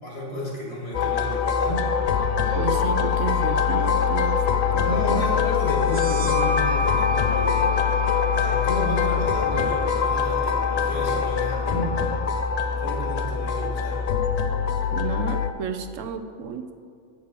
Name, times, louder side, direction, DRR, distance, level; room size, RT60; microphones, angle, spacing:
voice 1, 0.0-1.8 4.8-7.7 8.0-11.9 12.6-14.1, left 1 dB, 55° left, -3 dB, 2.6 m, -32 dB
sound 1, 0.9-15.5, left 7 dB, 85° left, 0.3 m, -23 dB
voice 2, 2.6-4.4 4.7-5.3 14.9-16.7, right 6 dB, 85° right, 7 dB, 1.0 m, -31 dB
sound 2, 5.8-13.1, equal, 60° right, 1.0 m, -32 dB
8.2 x 6.7 x 6.5 m, 2.3 s
omnidirectional pair, 1.3 m